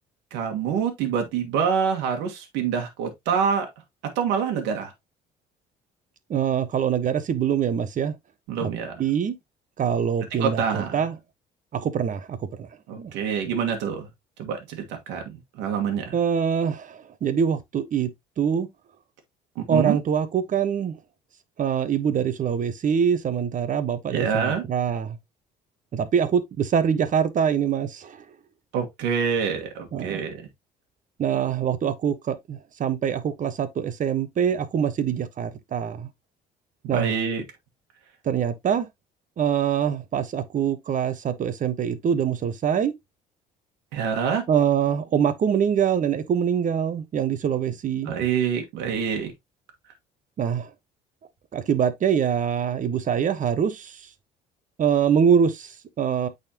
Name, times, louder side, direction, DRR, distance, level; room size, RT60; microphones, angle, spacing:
voice 1, 0.3-3.7 4.1-4.9 8.5-9.0 10.4-11.0 12.9-14.1 14.4-16.1 19.5-20.0 24.1-24.6 28.7-30.5 36.9-37.4 43.9-44.4 48.0-49.3, right 7 dB, 80° right, 1.7 m, -26 dB
voice 2, 6.3-8.2 8.6-8.7 9.0-9.3 9.8-11.1 11.7-12.7 13.0-13.1 16.1-18.1 18.4-18.7 19.7-20.9 21.6-25.2 25.9-28.2 29.9-30.2 31.2-36.1 36.9-37.1 38.2-38.9 39.4-42.9 44.5-48.1 50.4-50.7 51.5-54.1 54.8-56.3, right 8 dB, 50° right, 1.2 m, -24 dB
8.7 x 4.2 x 2.9 m
supercardioid pair, 80°, 18 cm